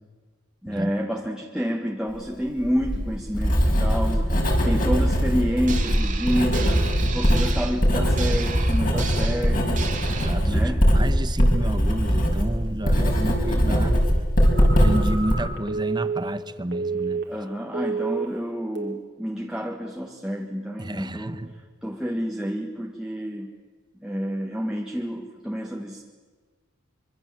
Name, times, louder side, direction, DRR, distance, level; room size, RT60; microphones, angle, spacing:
voice 1, 0.6-4.3 4.6-6.8 7.1-9.8 10.5-10.9 12.7-14.0 17.3-21.4 21.8-23.5 24.0-26.0, equal, 5° right, -1 dB, 1.7 m, -29 dB
Writing, 2.6-15.3, equal, 45° left, 5.6 m, -21 dB
sound 1, 5.7-10.3, right 7 dB, 40° right, 2.2 m, -35 dB
voice 2, 10.1-14.0 14.6-17.2 20.8-21.5, right 1 dB, 20° right, 12 dB, 1.1 m, -31 dB
Telephone, 14.4-17.5 17.7-18.4 18.8-19.1, right 4 dB, 60° right, 2.8 m, -30 dB
25.0 x 24.5 x 7.7 m, 1.4 s
head